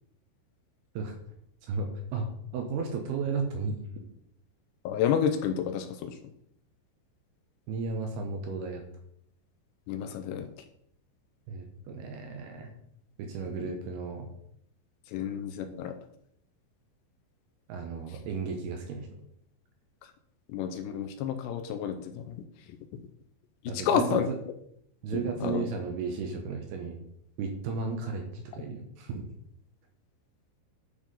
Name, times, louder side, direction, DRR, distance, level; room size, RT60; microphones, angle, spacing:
voice 1, 1.7-2.3 2.5-3.8 7.7-8.8 11.5-12.7 13.2-14.3 17.7-19.2 23.7-24.4 25.0-27.0 27.4-29.2, right 4 dB, 70° right, 3 dB, 2.7 m, -34 dB
voice 2, 4.9-6.2 9.9-10.5 13.7-13.8 15.1-15.9 20.5-22.4 23.7-24.3 25.1-25.6, left 8 dB, 80° left, 7 dB, 2.7 m, -30 dB
10.0 x 4.8 x 5.3 m, 0.73 s
omnidirectional pair, 5.4 m